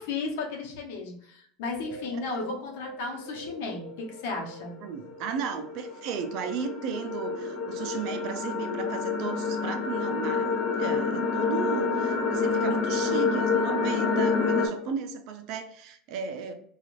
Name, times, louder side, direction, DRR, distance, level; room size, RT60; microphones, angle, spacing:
voice 1, 0.0-4.8, left 3 dB, 75° left, 1 dB, 0.8 m, -34 dB
sound 1, 1.8-14.7, left 4 dB, 30° left, 1.0 m, -29 dB
voice 2, 4.8-16.5, right 6 dB, 60° right, 7 dB, 0.5 m, -35 dB
3.0 x 2.4 x 2.5 m, 0.62 s
supercardioid pair, 115°, 0 cm